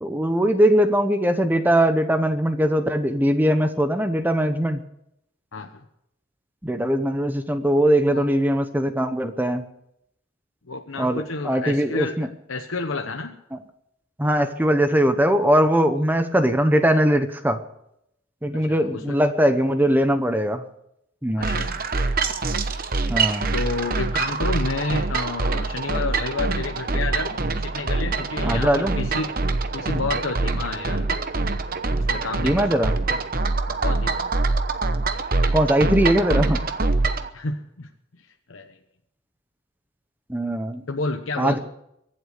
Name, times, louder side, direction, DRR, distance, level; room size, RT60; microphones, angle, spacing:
voice 1, 0.0-4.8 6.6-9.6 11.0-12.3 13.5-13.6 14.2-17.6 18.4-20.6 21.2-21.5 23.1-23.5 28.4-28.9 32.4-32.9 35.5-36.6 40.3-40.8 41.4-41.6, right 1 dB, 10° right, 8 dB, 0.9 m, -21 dB
voice 2, 5.5-5.8 8.1-8.3 10.7-13.3 18.5-19.2 21.4-21.8 23.5-29.3 29.7-31.1 32.1-32.7 33.7-34.3 37.3-37.9 38.5-38.7 40.9-41.6, left 3 dB, 70° left, 5 dB, 1.0 m, -30 dB
sound 1, 21.4-37.3, right 3 dB, 45° right, 1.0 m, -24 dB
23.5 x 7.9 x 6.6 m, 0.77 s
head